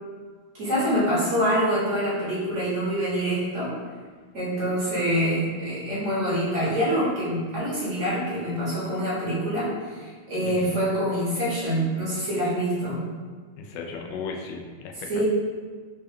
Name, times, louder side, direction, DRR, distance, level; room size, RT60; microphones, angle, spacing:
voice 1, 0.5-3.7 4.3-13.1 15.1-15.2, equal, 45° right, -8 dB, 1.0 m, -25 dB
voice 2, 10.4-10.8 13.6-15.2, left 4 dB, 75° left, 1 dB, 1.2 m, -36 dB
4.3 x 2.2 x 3.5 m, 1.5 s
omnidirectional pair, 2.3 m